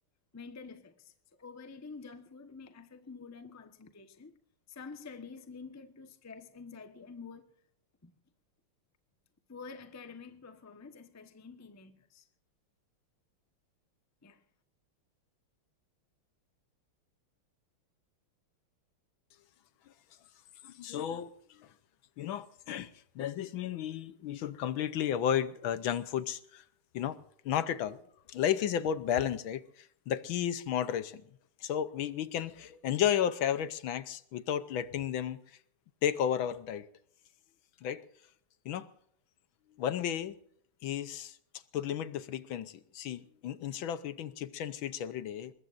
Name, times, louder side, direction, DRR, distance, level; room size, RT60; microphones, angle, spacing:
voice 1, 0.3-4.4 4.7-7.5 8.0-8.1 9.5-12.3 14.2-14.4, left 4 dB, 15° left, 0.6 m, -48 dB
voice 2, 20.6-21.7 22.2-26.6 26.9-27.2 27.4-28.0 28.3-31.2 31.6-35.4 36.0-36.9 37.8-38.0 38.6-38.9 39.8-40.3 40.8-41.4 41.7-45.5, left 9 dB, 70° left, 1.5 m, -33 dB
23.0 x 21.0 x 2.6 m
omnidirectional pair, 2.4 m